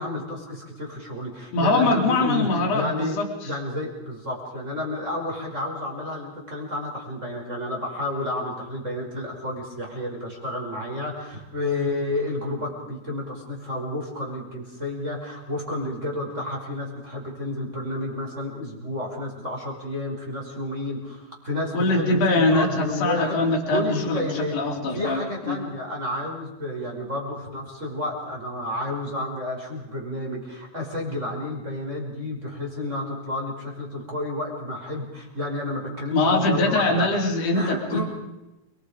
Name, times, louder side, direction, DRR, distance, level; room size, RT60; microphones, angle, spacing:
voice 1, 0.0-3.2 3.4-37.1 37.5-38.1, left 1 dB, 15° right, -1 dB, 5.3 m, -31 dB
voice 2, 1.5-3.5 21.7-25.2 25.5-25.6 36.1-38.1, left 2 dB, 35° left, -1 dB, 4.2 m, -23 dB
30.0 x 22.5 x 5.1 m, 1.0 s
omnidirectional pair, 5.9 m